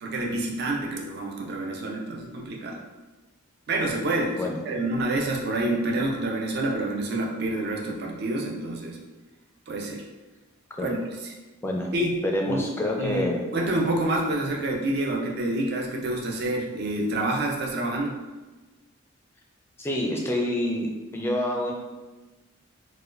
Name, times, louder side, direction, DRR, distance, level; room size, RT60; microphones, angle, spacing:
voice 1, 0.0-2.8 3.7-9.0 9.7-10.0 10.8-11.0 11.2-11.3 11.9-12.2 12.5-18.2, right 1 dB, 50° right, 0 dB, 0.5 m, -28 dB
voice 2, 12.2-13.4 19.8-21.7, left 1 dB, 10° left, 0 dB, 0.4 m, -27 dB
4.1 x 2.2 x 2.4 m, 1.2 s
head